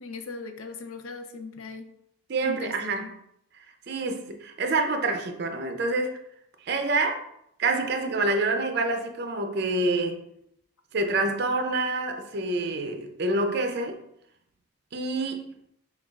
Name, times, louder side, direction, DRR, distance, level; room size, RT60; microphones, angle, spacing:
voice 1, 0.0-1.9 2.4-3.1, left 4 dB, 85° left, 6 dB, 0.5 m, -38 dB
voice 2, 2.3-3.1 3.5-6.2 6.6-7.2 7.6-10.2 10.9-14.0 14.9-15.5, right 2 dB, 50° right, 5 dB, 0.4 m, -27 dB
7.0 x 2.4 x 2.3 m, 0.76 s
head